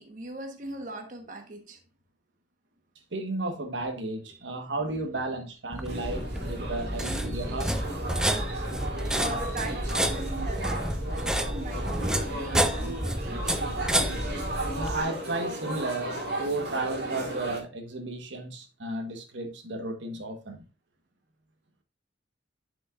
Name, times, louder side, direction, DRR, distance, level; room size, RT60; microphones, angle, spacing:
voice 1, 0.0-1.8 4.3-4.5 6.3-10.8 11.1-13.6, right 2 dB, 45° right, 1.1 m, -41 dB
voice 2, 3.1-7.9 14.7-20.6, right 2 dB, 90° right, 1.2 m, -34 dB
sound 1, 5.7-15.0, right 1 dB, 5° right, 0.5 m, -30 dB
sound 2, 5.9-17.6, right 1 dB, 65° right, 2.0 m, -35 dB
9.9 x 5.1 x 2.4 m
head